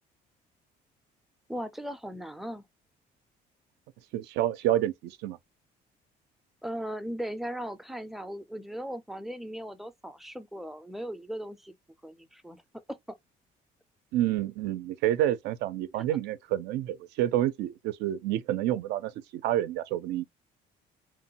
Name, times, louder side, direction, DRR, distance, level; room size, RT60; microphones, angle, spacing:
voice 1, 1.5-2.6 6.6-11.7 12.0-12.6 12.9-13.2, equal, ahead, 0.3 m, -38 dB
voice 2, 4.1-5.4 14.1-20.2, right 13 dB, 80° right, 0.4 m, -28 dB
3.0 x 2.2 x 2.7 m
cardioid pair, 110°, 17 cm